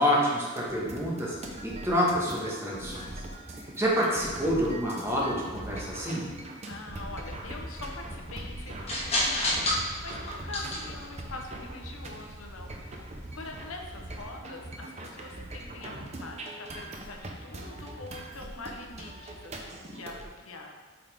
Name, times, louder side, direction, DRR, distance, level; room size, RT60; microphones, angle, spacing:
voice 1, 0.0-3.2 3.6-6.3, equal, 10° right, -4 dB, 1.3 m, -28 dB
sound 1, 0.6-20.3, right 1 dB, 30° right, 0.7 m, -42 dB
voice 2, 6.7-9.7 10.0-20.8, left 3 dB, 75° left, 2 dB, 0.8 m, -44 dB
sound 2, 6.8-14.2, left 1 dB, 30° left, 1.3 m, -35 dB
8.6 x 4.1 x 3.5 m, 1.4 s
head